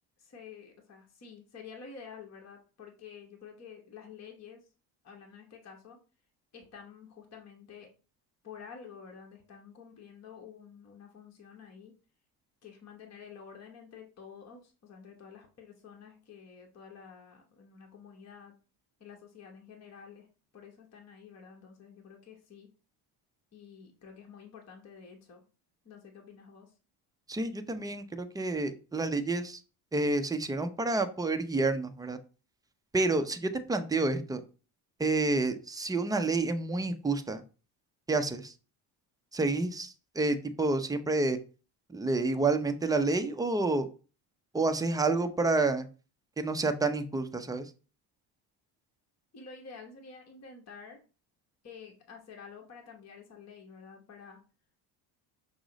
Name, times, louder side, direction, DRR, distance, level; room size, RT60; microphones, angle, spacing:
voice 1, 0.2-4.6 5.0-6.0 6.5-7.9 8.4-11.9 12.6-18.5 19.0-20.3 20.5-22.7 23.5-25.4 25.8-26.7 49.3-51.0 51.6-54.4, left 6 dB, 35° left, 2 dB, 1.0 m, -50 dB
voice 2, 27.3-29.6 29.9-32.2 32.9-34.4 35.0-37.4 38.1-38.5 39.3-41.4 41.9-43.9 44.5-45.9 46.4-47.7, right 3 dB, 10° right, 8 dB, 0.4 m, -29 dB
5.9 x 2.1 x 3.8 m, 0.34 s
supercardioid pair, 85°, 48 cm